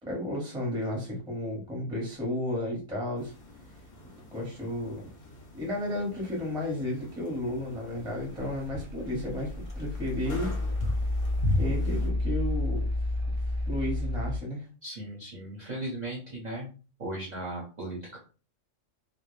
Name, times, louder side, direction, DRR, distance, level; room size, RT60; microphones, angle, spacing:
voice 1, 0.0-3.3 4.3-5.1 5.5-10.5 11.6-12.9 13.7-14.7, left 1 dB, 5° right, -2 dB, 0.7 m, -33 dB
sound 1, 3.1-12.1, left 2 dB, 50° left, 0.6 m, -38 dB
sound 2, 8.0-14.4, left 1 dB, 70° right, 0.3 m, -31 dB
voice 2, 14.8-16.7 17.0-18.2, right 1 dB, 40° right, -5 dB, 0.7 m, -37 dB
2.2 x 2.0 x 3.0 m, 0.35 s
omnidirectional pair, 1.4 m